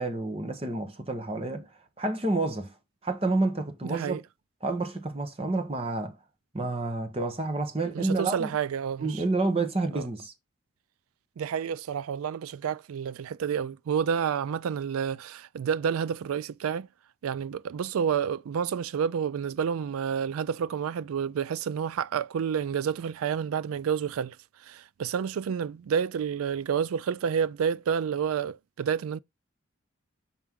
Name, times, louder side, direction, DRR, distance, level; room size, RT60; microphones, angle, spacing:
voice 1, 0.0-1.7 2.0-2.7 3.0-4.2 4.6-6.2 6.5-8.5 9.0-10.3, right 2 dB, 25° right, 1.0 m, -29 dB
voice 2, 3.8-4.2 7.9-9.2 9.9-10.1 11.4-16.9 17.2-29.2, right 7 dB, 90° right, 0.4 m, -29 dB
5.9 x 4.4 x 3.6 m
head